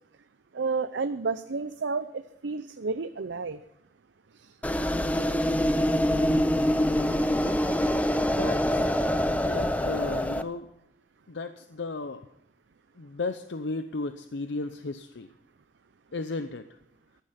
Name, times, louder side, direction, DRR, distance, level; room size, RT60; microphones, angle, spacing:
voice 1, 0.5-3.6 4.4-4.5, right 4 dB, 80° right, 10 dB, 0.6 m, -31 dB
sound 1, 4.6-10.4, equal, 10° left, 0.6 m, -25 dB
voice 2, 8.3-8.9 9.4-10.7 11.3-12.2 13.0-15.3 16.1-16.6, left 3 dB, 75° left, 10 dB, 0.7 m, -34 dB
14.5 x 11.5 x 5.8 m, 0.80 s
head